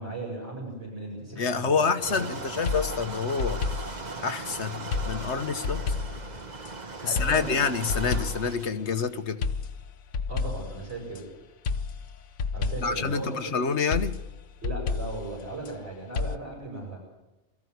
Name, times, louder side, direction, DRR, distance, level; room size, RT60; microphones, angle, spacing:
voice 1, 0.0-1.8 2.1-2.5 7.0-7.6 10.3-11.2 12.5-13.5 14.6-17.0, right 2 dB, 50° right, 7.9 m, -37 dB
voice 2, 1.4-3.6 4.2-5.9 7.0-9.4 12.8-14.2, left 5 dB, 60° left, 1.4 m, -27 dB
sound 1, 2.0-8.7, right 3 dB, 35° right, 1.2 m, -38 dB
sound 2, 2.1-2.3 2.6-4.1 4.9-6.7 7.1-8.6 9.4-11.2 11.6-13.1 13.9-15.8 16.1-16.4, left 4 dB, 85° left, 1.3 m, -31 dB
22.5 x 14.5 x 9.5 m
omnidirectional pair, 1.4 m